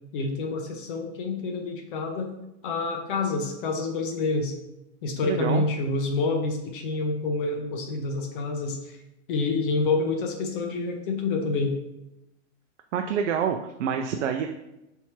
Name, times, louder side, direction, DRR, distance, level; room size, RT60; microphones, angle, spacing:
voice 1, 0.1-2.4 2.6-4.5 5.0-9.0 9.3-11.8, left 3 dB, 50° left, 4 dB, 0.7 m, -28 dB
voice 2, 5.2-5.6 12.9-14.5, right 7 dB, 90° right, 5 dB, 0.5 m, -27 dB
4.4 x 3.5 x 2.9 m, 0.91 s
supercardioid pair, 160°, 35 cm